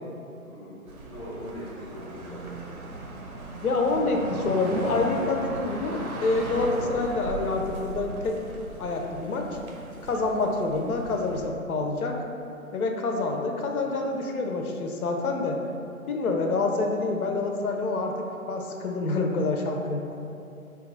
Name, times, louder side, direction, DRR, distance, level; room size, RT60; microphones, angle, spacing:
voice 1, 0.5-2.7, equal, 20° left, -9 dB, 0.6 m, -41 dB
sound 1, 0.9-11.5, right 2 dB, 80° right, 0.6 m, -37 dB
voice 2, 3.6-8.4 8.8-9.5 10.0-12.2 12.7-15.6 16.1-20.1, left 3 dB, 80° left, 2 dB, 0.5 m, -27 dB
2.7 x 2.3 x 3.8 m, 2.7 s
figure-of-eight pair, 145°, 43 cm